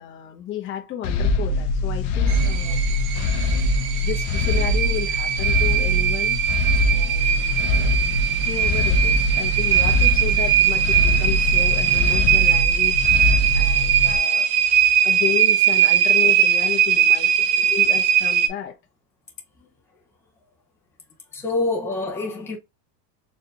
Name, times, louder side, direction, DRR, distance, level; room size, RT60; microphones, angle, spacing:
voice 1, 0.0-3.0 4.0-6.5 6.9-8.0 8.4-14.5 15.0-18.8, left 10 dB, 25° left, 1.0 m, -32 dB
sound 1, 1.0-14.2, left 1 dB, 45° left, 0.7 m, -23 dB
sound 2, 2.3-18.5, right 10 dB, 50° right, 0.7 m, -20 dB
voice 2, 3.5-3.9 8.3-8.5 17.7-17.8 19.6-19.7 21.3-22.6, left 3 dB, 5° left, 0.5 m, -28 dB
sound 3, 7.2-12.5, left 5 dB, 90° left, 1.4 m, -38 dB
4.3 x 3.2 x 2.4 m
supercardioid pair, 165°, 46 cm